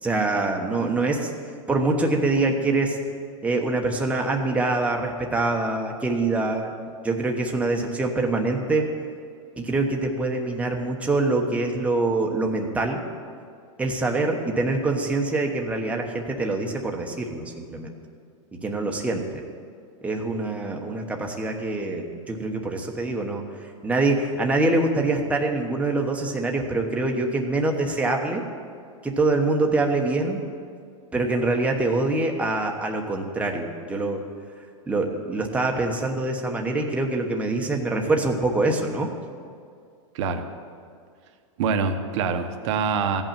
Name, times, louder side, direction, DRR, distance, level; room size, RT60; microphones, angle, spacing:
voice 1, 0.0-1.3 1.7-3.0 3.4-6.7 7.0-8.9 9.6-13.0 13.8-18.0 18.5-19.4 20.0-23.4 23.8-28.4 29.0-30.4 31.1-34.2 34.9-39.1, right 2 dB, 5° right, 1 dB, 1.1 m, -24 dB
voice 2, 41.6-43.2, right 5 dB, 55° right, 6 dB, 1.2 m, -25 dB
15.5 x 5.6 x 8.9 m, 2.2 s
supercardioid pair, 140°, 18 cm